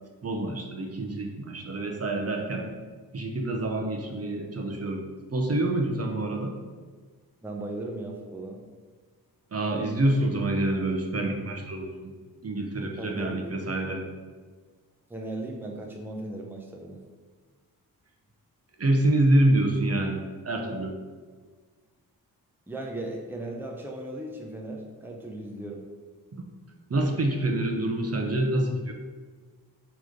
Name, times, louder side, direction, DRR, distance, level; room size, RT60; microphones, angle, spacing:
voice 1, 0.2-2.7 3.1-5.0 5.3-6.6 9.5-12.1 12.4-14.0 18.8-21.0 26.3-26.4 26.9-28.9, right 1 dB, 40° right, 2 dB, 1.1 m, -26 dB
voice 2, 7.4-8.6 13.0-13.5 15.1-17.0 22.7-25.8, right 1 dB, 5° right, 0 dB, 0.8 m, -37 dB
6.5 x 3.5 x 5.2 m, 1.5 s
cardioid pair, 75°, 37 cm